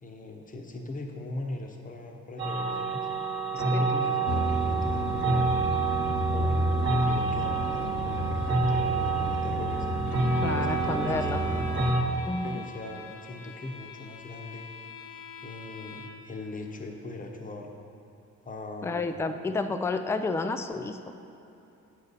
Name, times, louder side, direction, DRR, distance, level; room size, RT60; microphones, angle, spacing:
voice 1, 0.0-3.1 3.5-5.4 6.3-11.7 12.4-14.7 15.4-17.7 18.4-19.3, left 2 dB, 25° left, 2 dB, 1.0 m, -40 dB
sound 1, 2.4-12.0, right 4 dB, 40° right, 1.2 m, -28 dB
sound 2, 4.3-11.9, left 1 dB, 55° left, 1.0 m, -31 dB
Bowed string instrument, 10.1-16.4, left 6 dB, 85° left, 0.7 m, -44 dB
voice 2, 10.4-11.4 12.3-12.7 18.8-21.0, left 3 dB, 10° left, 8 dB, 0.3 m, -30 dB
8.1 x 6.7 x 4.1 m, 2.8 s
cardioid pair, 90°, 30 cm